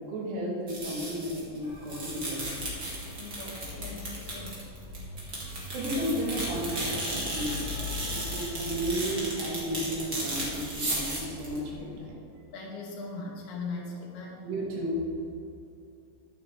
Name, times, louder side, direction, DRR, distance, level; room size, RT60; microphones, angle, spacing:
voice 1, 0.0-2.7 5.7-12.1 14.4-15.0, equal, 90° right, -3 dB, 3.8 m, -33 dB
sound 1, 0.7-12.0, right 1 dB, 30° right, 1.9 m, -35 dB
sound 2, 1.6-8.8, left 3 dB, 50° left, 2.8 m, -42 dB
voice 2, 3.2-4.6 12.5-14.4, left 3 dB, 75° left, -1 dB, 3.4 m, -39 dB
10.5 x 9.1 x 3.5 m, 2.8 s
omnidirectional pair, 4.7 m